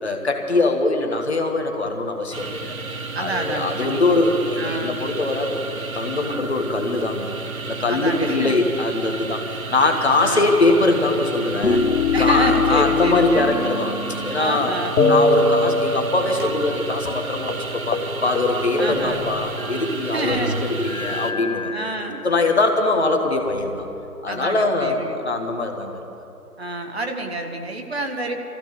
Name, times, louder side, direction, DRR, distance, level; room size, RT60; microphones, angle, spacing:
voice 1, 0.0-2.7 3.2-5.5 5.9-7.3 7.6-11.8 12.2-14.0 14.2-14.7 15.0-21.7 22.2-23.9 24.2-26.0, left 2 dB, 45° left, 4 dB, 1.3 m, -22 dB
sound 1, 2.3-21.3, right 4 dB, 65° right, 1.0 m, -32 dB
voice 2, 3.1-4.2 4.6-4.9 7.9-8.8 10.1-10.5 12.1-13.5 14.4-15.0 18.8-19.3 20.1-20.6 21.6-22.3 24.3-25.2 26.6-28.3, right 2 dB, 45° right, 4 dB, 1.2 m, -28 dB
sound 2, 11.6-14.6 15.0-16.8 17.1-17.2 17.5-17.7 17.9-18.1 18.4-20.1 20.8-22.4 23.1-24.0, left 3 dB, 65° left, 1.2 m, -23 dB
sound 3, 14.4-15.4 15.9-21.3, right 1 dB, 80° right, 3.6 m, -38 dB
21.0 x 15.0 x 4.0 m, 2.9 s
figure-of-eight pair, 170°, 45 cm